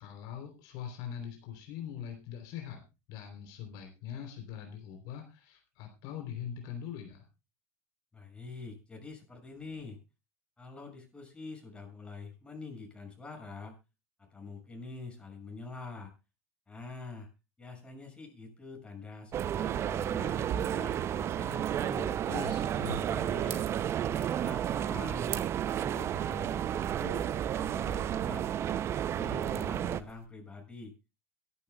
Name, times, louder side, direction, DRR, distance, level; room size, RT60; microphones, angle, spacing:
voice 1, 0.0-2.8 3.1-7.3 22.3-23.0, left 9 dB, 60° left, 4 dB, 3.5 m, -42 dB
voice 2, 8.1-10.0 10.6-13.7 14.2-16.1 16.7-17.3 17.6-22.2 22.8-23.6 24.2-25.4 25.6-28.5 28.9-30.9, left 3 dB, 15° left, 2 dB, 6.7 m, -45 dB
sound 1, 19.3-30.0, right 10 dB, 35° right, 0.6 m, -32 dB
sound 2, 22.9-30.3, right 10 dB, 90° right, 2.0 m, -51 dB
23.0 x 11.0 x 2.3 m, 0.28 s
hypercardioid pair, 100°, 8 cm